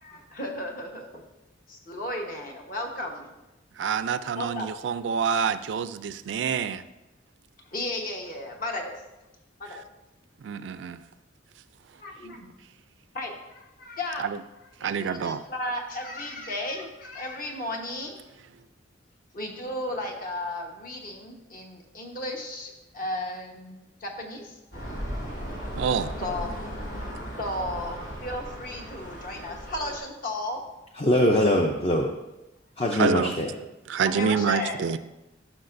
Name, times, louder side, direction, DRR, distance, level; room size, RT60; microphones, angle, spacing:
voice 1, 0.0-1.2 1.7-3.3 4.3-4.7 7.7-9.0 9.6-9.8 12.0-12.5 13.1-14.2 14.8-18.2 19.3-24.6 26.2-26.5 27.4-30.6 34.0-34.8, left 1 dB, 50° left, 1 dB, 1.1 m, -34 dB
voice 2, 3.8-6.8 10.4-11.0 14.2-14.4 14.8-15.4 25.8-26.1 32.9-33.4 33.9-35.0, right 6 dB, 75° right, 13 dB, 0.3 m, -27 dB
sound 1, 24.7-30.0, equal, 80° left, 2.9 m, -36 dB
voice 3, 31.0-32.1 32.8-33.5, left 1 dB, 30° left, 1 dB, 0.5 m, -22 dB
11.5 x 5.8 x 2.6 m, 0.98 s
head